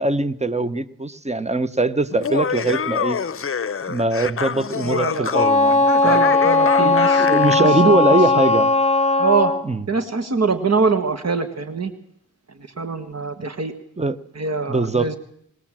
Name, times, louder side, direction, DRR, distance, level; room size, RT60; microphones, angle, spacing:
voice 1, 0.0-3.2 3.9-6.2 6.8-8.7 9.6-9.8 13.4-13.5 14.0-14.2 14.7-15.2, right 2 dB, 20° right, 13 dB, 1.0 m, -22 dB
Laughter, 2.1-7.7, left 7 dB, 40° left, 0.7 m, -26 dB
voice 2, 4.8-5.3 6.0-8.2 9.2-9.5 9.9-11.9 12.8-13.7 14.4-15.2, right 4 dB, 50° right, 8 dB, 1.6 m, -24 dB
Wind instrument woodwind instrument, 5.3-9.6, left 3 dB, 20° left, 1.3 m, -17 dB
21.0 x 18.5 x 7.5 m, 0.72 s
cardioid pair, 80°, 32 cm